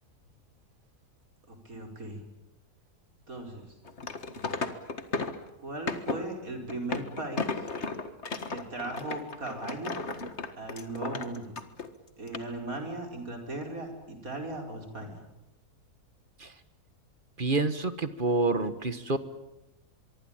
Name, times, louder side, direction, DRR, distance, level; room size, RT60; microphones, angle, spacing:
voice 1, 1.5-2.2 3.3-3.8 5.6-7.5 8.5-10.0 10.6-11.6 12.2-15.2, right 2 dB, 60° right, 4 dB, 5.4 m, -37 dB
sound 1, 3.9-5.5 5.9-6.2 6.7-11.9 12.3-12.4, left 3 dB, 45° left, 1.9 m, -34 dB
voice 2, 17.4-19.2, right 3 dB, 35° right, 12 dB, 1.6 m, -28 dB
24.5 x 23.5 x 8.9 m, 0.91 s
omnidirectional pair, 1.7 m